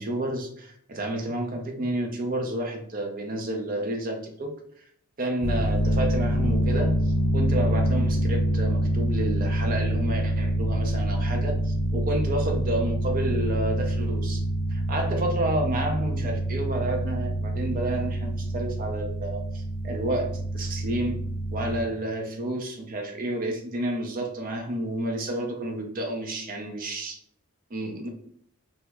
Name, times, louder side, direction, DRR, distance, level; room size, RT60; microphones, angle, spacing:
voice 1, 0.0-4.5 5.2-14.4 14.7-21.2 21.5-27.2 27.7-28.1, right 1 dB, 40° right, 3 dB, 0.5 m, -30 dB
sound 1, 5.4-21.8, right 1 dB, 80° left, 0.5 m, -26 dB
2.9 x 2.1 x 3.4 m, 0.64 s
head